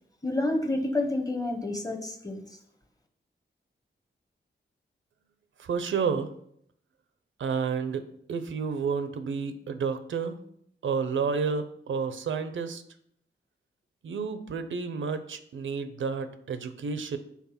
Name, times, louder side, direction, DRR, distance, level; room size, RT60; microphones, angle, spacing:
voice 1, 0.2-2.4, left 2 dB, 20° left, 5 dB, 0.9 m, -29 dB
voice 2, 5.6-6.3 7.4-10.4 10.8-12.8 14.0-17.2, right 5 dB, 90° right, 10 dB, 0.6 m, -30 dB
5.9 x 4.2 x 5.7 m, 0.69 s
wide cardioid pair, 145°, 20 cm